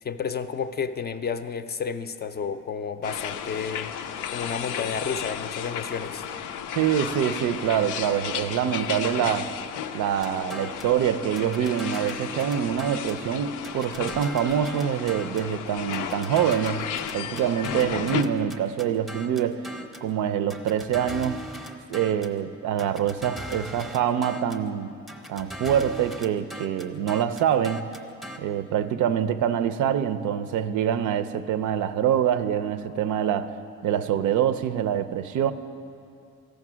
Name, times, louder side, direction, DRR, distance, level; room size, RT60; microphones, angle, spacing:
voice 1, 0.0-6.3, left 6 dB, 35° left, 10 dB, 0.4 m, -31 dB
sound 1, 3.0-18.2, left 8 dB, 90° left, 0.5 m, -34 dB
voice 2, 6.8-9.5 9.9-19.7 20.0-21.4 21.9-24.9 25.3-27.9 28.4-33.5 33.8-35.5, right 9 dB, 80° right, 11 dB, 0.5 m, -25 dB
sound 2, 10.2-11.0 11.4-13.2 13.6-15.5 15.9-20.1 20.5-22.4 22.8-24.7 25.1-28.4, equal, ahead, 0.7 m, -40 dB
13.5 x 5.2 x 6.1 m, 2.5 s
cardioid pair, 90°, 30 cm